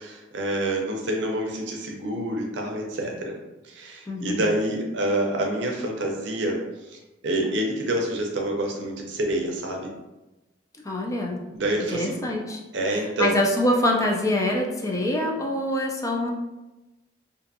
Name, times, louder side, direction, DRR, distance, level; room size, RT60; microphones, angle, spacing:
voice 1, 0.0-3.3 3.7-6.6 6.9-9.9 11.5-12.2 12.7-13.4, right 1 dB, 75° right, 1 dB, 0.5 m, -27 dB
voice 2, 4.1-4.5 10.8-11.4 11.9-12.6 13.2-16.3, left 1 dB, 20° left, 0 dB, 0.4 m, -24 dB
2.5 x 2.4 x 2.6 m, 1.0 s
head